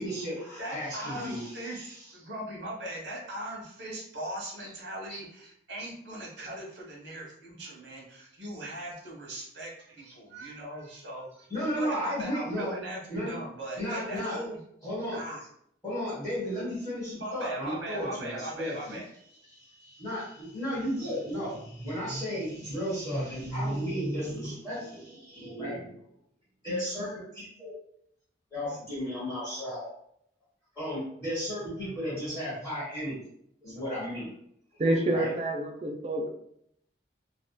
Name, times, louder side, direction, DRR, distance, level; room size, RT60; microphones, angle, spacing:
voice 1, 0.0-2.1 4.6-4.7 5.1-5.2 11.5-12.7 13.1-13.3 13.8-14.4 14.8-15.2 15.8-19.0 19.5-26.0 26.6-27.7 28.5-29.9 30.7-33.2 33.6-34.3 34.7-34.8 35.1-35.3, equal, 10° left, -11 dB, 1.2 m, -34 dB
voice 2, 0.6-1.8 2.1-11.5 11.7-14.6 15.1-15.4 17.1-19.0, right 1 dB, 80° right, -3 dB, 0.9 m, -39 dB
voice 3, 34.8-36.3, right 1 dB, 35° right, 2 dB, 0.3 m, -27 dB
2.6 x 2.1 x 2.2 m, 0.71 s
head